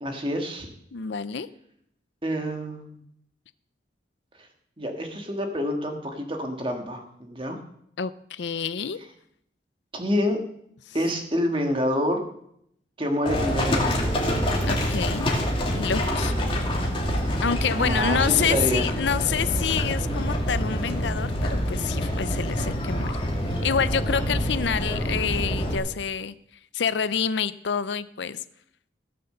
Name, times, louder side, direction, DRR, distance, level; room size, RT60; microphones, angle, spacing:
voice 1, 0.0-0.7 2.2-3.0 4.8-7.6 9.9-10.4 10.9-12.2 13.0-14.2 17.2-17.4 17.7-18.8, equal, 25° right, 4 dB, 1.7 m, -27 dB
voice 2, 0.9-1.5 8.0-9.0 10.9-11.0 14.6-15.3 15.7-16.3 17.4-23.1 23.6-26.3 26.7-28.4, left 7 dB, 70° left, 15 dB, 0.5 m, -27 dB
Livestock farm animals working animals, 13.3-25.8, equal, 30° left, 2.4 m, -26 dB
16.5 x 6.7 x 6.7 m, 0.73 s
head